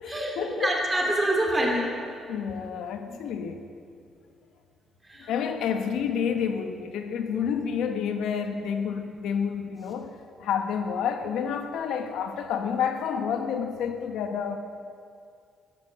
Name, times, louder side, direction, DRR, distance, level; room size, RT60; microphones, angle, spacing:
voice 1, 0.0-0.8 2.3-3.6 5.2-14.6, left 7 dB, 85° left, 7 dB, 1.1 m, -29 dB
voice 2, 0.6-1.9 5.1-5.2, right 1 dB, 15° right, 0 dB, 3.0 m, -25 dB
13.0 x 12.5 x 7.4 m, 2.3 s
cardioid pair, 90°, 0 cm